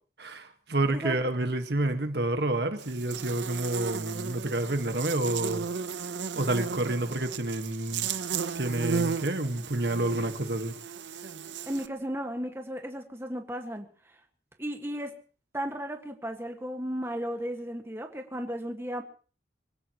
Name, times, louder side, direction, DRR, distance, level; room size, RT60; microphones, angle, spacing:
voice 1, 0.2-5.6 6.3-8.1 8.5-10.7, right 2 dB, 65° right, 7 dB, 1.6 m, -29 dB
Buzz, 2.8-11.9, right 6 dB, 80° right, 0.9 m, -35 dB
voice 2, 11.7-13.9 14.6-15.2 15.5-19.0, equal, 15° right, 3 dB, 1.7 m, -34 dB
25.0 x 17.0 x 3.1 m, 0.39 s
head